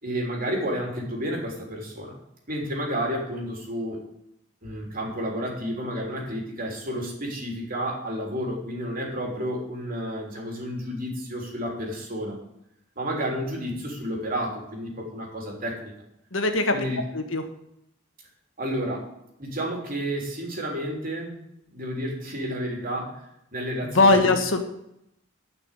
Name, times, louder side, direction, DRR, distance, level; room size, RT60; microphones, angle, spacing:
voice 1, 0.0-2.1 2.5-4.0 4.6-12.4 12.9-15.9 16.7-17.0 18.6-19.1 19.4-21.4 21.7-23.2 23.5-24.3, equal, 45° right, 0 dB, 3.4 m, -31 dB
voice 2, 16.3-16.7 17.1-17.4 23.8-24.6, left 2 dB, 80° left, 5 dB, 1.5 m, -20 dB
11.0 x 6.0 x 8.3 m, 0.80 s
head